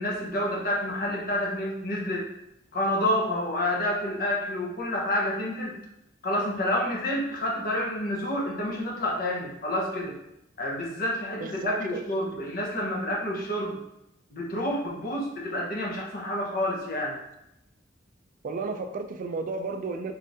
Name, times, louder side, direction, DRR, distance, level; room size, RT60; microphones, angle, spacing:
voice 1, 0.0-2.3 2.7-5.8 6.2-10.1 10.6-13.8 14.3-17.2, left 1 dB, 50° left, -3 dB, 1.1 m, -29 dB
voice 2, 11.4-12.1 18.4-20.1, right 3 dB, 45° right, 7 dB, 0.3 m, -32 dB
4.9 x 3.2 x 2.7 m, 0.83 s
head